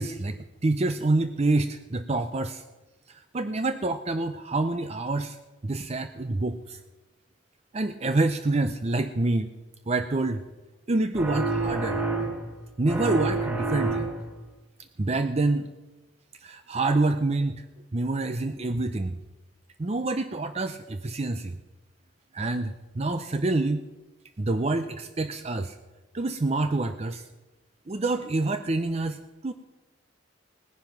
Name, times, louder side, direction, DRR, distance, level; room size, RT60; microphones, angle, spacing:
voice 1, 0.0-2.6 3.1-5.4 5.6-6.8 7.7-9.5 9.9-10.4 10.9-12.0 12.8-14.1 15.0-15.7 16.4-17.6 17.9-19.1 19.8-21.6 22.3-23.8 24.4-25.8 26.1-27.2 27.9-29.5, right 2 dB, 35° right, 10 dB, 0.6 m, -27 dB
sound 1, 11.1-12.6 12.9-14.4, right 3 dB, 10° right, 1.4 m, -28 dB
18.5 x 10.5 x 6.0 m, 1.1 s
head